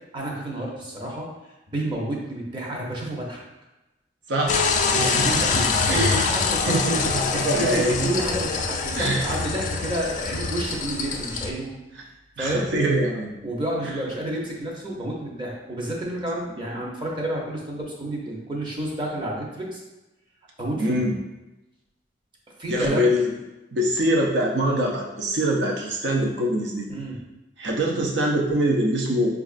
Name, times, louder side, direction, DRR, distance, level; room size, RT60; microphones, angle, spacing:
voice 1, 0.1-1.3 1.7-3.4 4.9-7.0 7.3-11.7 12.4-12.7 13.4-19.8 20.6-21.0 22.6-23.1 26.9-27.2, right 1 dB, 25° right, -2 dB, 0.7 m, -30 dB
voice 2, 4.3-4.6 4.9-5.6 5.9-6.2 6.7-8.1 9.0-9.2 12.4-13.3 20.8-21.2 22.7-23.3 23.7-26.9 27.6-29.3, right 1 dB, 85° right, 0 dB, 0.6 m, -24 dB
sound 1, 4.5-11.5, left 4 dB, 45° left, 0.3 m, -25 dB
5.1 x 2.4 x 2.4 m, 1.0 s
head